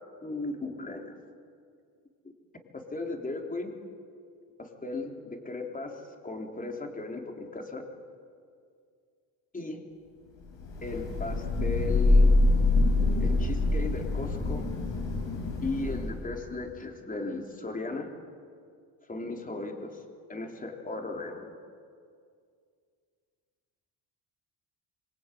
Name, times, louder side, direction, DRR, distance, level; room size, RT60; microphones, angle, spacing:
voice 1, 0.2-1.2 2.7-3.8 4.6-7.8 9.5-9.8 10.8-12.3 13.2-14.7 15.6-18.1 19.1-20.0 20.3-21.5, left 2 dB, 20° left, 2 dB, 3.7 m, -36 dB
Thunder / Rain, 10.6-16.3, left 2 dB, 75° left, 6.9 m, -25 dB
27.0 x 23.0 x 9.4 m, 2.2 s
cardioid pair, 130°, 45 cm